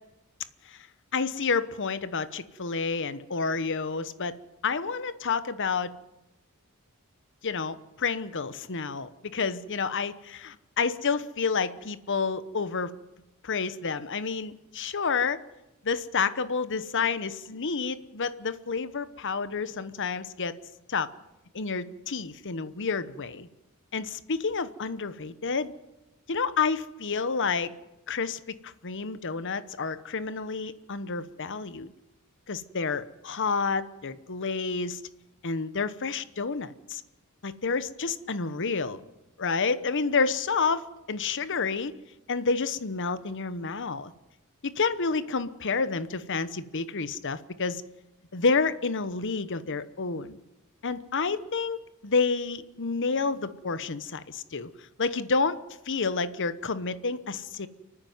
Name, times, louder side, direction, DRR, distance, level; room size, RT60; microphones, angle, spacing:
voice 1, 1.1-4.3 4.6-5.9 7.4-12.9 13.4-15.4 15.8-20.5 20.9-21.1 21.5-23.5 23.9-25.7 26.3-27.7 28.1-31.9 32.5-35.0 35.4-37.0 37.4-39.0 39.4-41.9 42.3-44.1 44.6-47.8 48.3-50.4 50.8-54.7 55.0-55.6 55.9-57.7, left 4 dB, 60° left, 14 dB, 1.0 m, -29 dB
29.0 x 9.8 x 9.4 m, 1.0 s
head